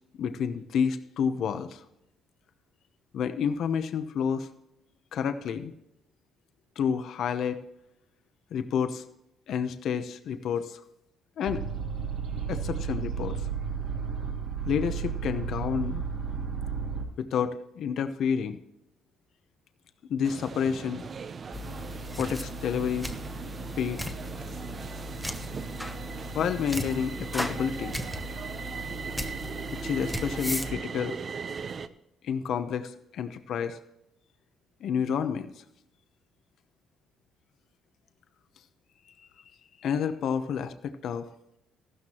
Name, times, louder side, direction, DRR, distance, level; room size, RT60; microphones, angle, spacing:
voice 1, 0.2-1.8 3.1-4.5 5.1-5.7 6.8-7.6 8.5-9.0 9.5-10.8 11.4-11.6 12.5-13.4 14.7-16.0 17.2-18.6 20.1-21.0 22.2-23.1 23.8-24.0 26.3-28.0 29.7-31.2 32.2-33.8 34.8-35.5 39.8-41.3, left 7 dB, 60° left, 10 dB, 0.9 m, -29 dB
sound 1, 11.5-17.0, right 6 dB, 65° right, 2.7 m, -32 dB
sound 2, 20.2-31.9, right 5 dB, 35° right, 0.6 m, -39 dB
sound 3, 21.5-30.7, left 1 dB, 5° left, 0.9 m, -37 dB
14.5 x 12.5 x 3.0 m, 0.84 s
cardioid pair, 125°, 0 cm